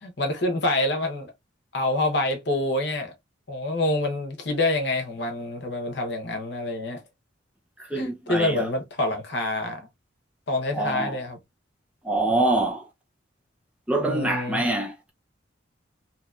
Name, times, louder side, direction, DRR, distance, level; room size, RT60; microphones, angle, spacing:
voice 1, 0.0-1.3 1.7-3.1 3.5-7.0 7.9-9.9 10.5-11.4 14.0-14.6, left 2 dB, 55° left, 0.9 m, -27 dB
voice 2, 7.8-8.7 10.7-11.2 12.0-12.9 13.9-15.1, right 2 dB, 5° right, 0.5 m, -25 dB
2.8 x 2.7 x 2.3 m
head